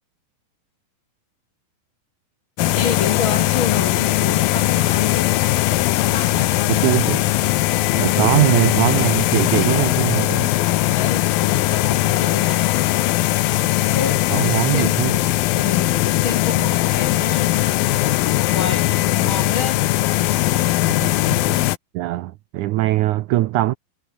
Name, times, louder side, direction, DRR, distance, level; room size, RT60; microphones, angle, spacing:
sound 1, 2.6-21.8, left 16 dB, 75° left, 2.6 m, -19 dB
voice 1, 2.8-5.3 6.0-7.3 10.9-12.7 13.9-14.9 15.6-17.6 18.5-19.8, left 5 dB, 45° left, 2.0 m, -29 dB
voice 2, 6.8-7.2 8.0-10.5 14.3-15.2 21.0-21.6 21.9-23.7, right 16 dB, 80° right, 1.8 m, -21 dB
omnidirectional pair, 4.3 m